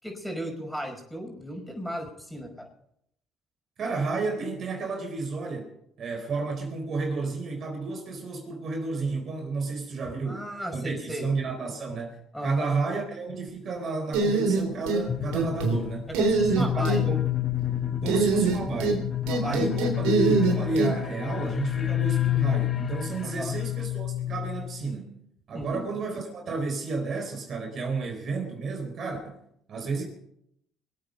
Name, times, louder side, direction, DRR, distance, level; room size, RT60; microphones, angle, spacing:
voice 1, 0.0-2.7 10.3-11.3 12.3-12.8 16.1-17.1 19.2-19.8 23.2-23.6 25.5-25.9, equal, 5° left, 5.3 m, -35 dB
voice 2, 3.8-5.7 6.0-10.4 10.7-12.2 12.4-16.1 16.5-17.2 18.0-19.1 19.4-25.2 25.5-29.4 29.7-30.0, right 3 dB, 50° right, 4.0 m, -31 dB
sound 1, 14.1-15.0 15.3-15.8 16.1-17.0 18.1-19.0 19.3-20.9, right 4 dB, 85° right, 3.4 m, -23 dB
sound 2, 15.1-24.9, left 13 dB, 35° left, 1.0 m, -29 dB
23.5 x 8.7 x 5.5 m
supercardioid pair, 80°, 0 cm